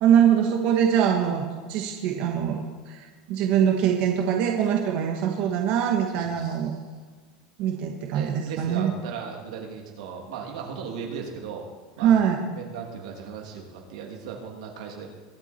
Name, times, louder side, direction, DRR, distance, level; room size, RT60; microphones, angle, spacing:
voice 1, 0.0-6.8 7.6-8.9 12.0-12.4, right 9 dB, 50° right, 2 dB, 1.5 m, -23 dB
voice 2, 6.1-6.5 8.1-11.7 12.0-12.1 12.6-15.1, right 6 dB, 90° right, 1 dB, 2.9 m, -37 dB
22.5 x 8.2 x 4.5 m, 1.4 s
supercardioid pair, 155°, 3 cm